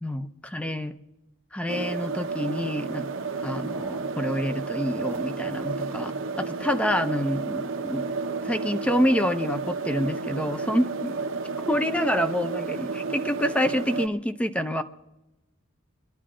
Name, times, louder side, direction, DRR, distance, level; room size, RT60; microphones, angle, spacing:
voice 1, 0.0-1.0 1.5-3.1 3.4-8.0 8.4-11.2 11.7-14.8, equal, 5° left, 10 dB, 0.4 m, -27 dB
sound 1, 1.7-14.1, right 4 dB, 65° right, 0.7 m, -31 dB
23.0 x 11.5 x 3.7 m, 0.97 s
head